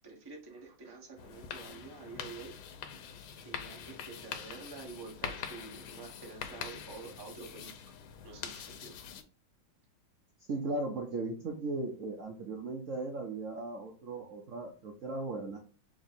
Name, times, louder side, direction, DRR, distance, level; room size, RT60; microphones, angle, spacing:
voice 1, 0.0-2.6 3.4-7.8 8.2-9.0, right 4 dB, 35° right, -1 dB, 0.4 m, -48 dB
sound 1, 1.2-9.2, left 8 dB, 85° left, 1.5 m, -44 dB
voice 2, 10.5-15.6, right 2 dB, 80° right, 0 dB, 0.7 m, -37 dB
3.6 x 3.3 x 4.0 m, 0.38 s
omnidirectional pair, 2.3 m